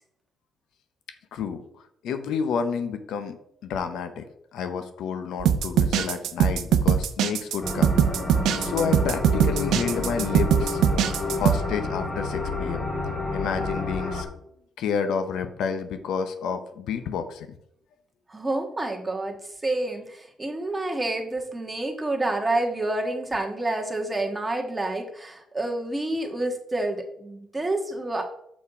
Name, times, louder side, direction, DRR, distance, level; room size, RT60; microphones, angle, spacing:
voice 1, 1.3-1.6 2.0-3.4 3.6-4.3 4.5-7.9 8.6-10.8 11.3-12.8 13.3-14.3 14.8-17.5, left 6 dB, 80° left, 8 dB, 0.8 m, -30 dB
sound 1, 5.4-11.6, right 9 dB, 80° right, 0.6 m, -22 dB
sound 2, 7.6-14.2, left 2 dB, 35° left, 2.0 m, -29 dB
voice 2, 18.3-19.4 19.6-28.3, right 2 dB, 15° right, 3 dB, 1.5 m, -28 dB
6.3 x 5.9 x 4.9 m, 0.72 s
cardioid pair, 90°, 0 cm